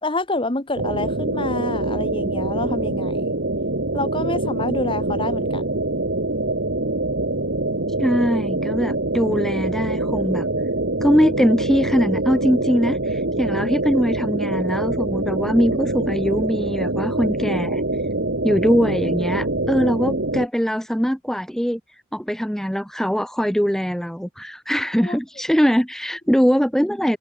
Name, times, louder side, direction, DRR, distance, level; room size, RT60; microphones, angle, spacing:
voice 1, 0.0-3.3 3.9-5.7 19.8-19.9 25.0-25.2, left 2 dB, 25° left, 1.4 m, -27 dB
sound 1, 0.8-20.5, right 2 dB, 55° right, 1.9 m, -24 dB
voice 2, 8.0-10.5 11.0-17.8 18.4-21.8 22.1-27.2, equal, ahead, 1.0 m, -21 dB
open air
head